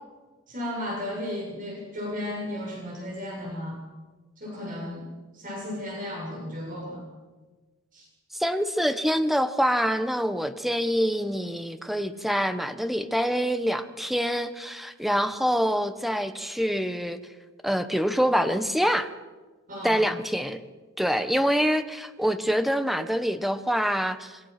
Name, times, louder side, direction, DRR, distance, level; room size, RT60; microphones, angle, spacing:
voice 1, 0.5-3.8 4.4-5.1 5.3-7.0 7.9-8.1 19.7-20.0, left 1 dB, 40° right, -2 dB, 7.2 m, -34 dB
voice 2, 8.3-17.2 17.6-19.1 19.8-20.6 21.0-24.4, equal, ahead, 9 dB, 1.2 m, -25 dB
27.0 x 23.0 x 6.0 m, 1.3 s
head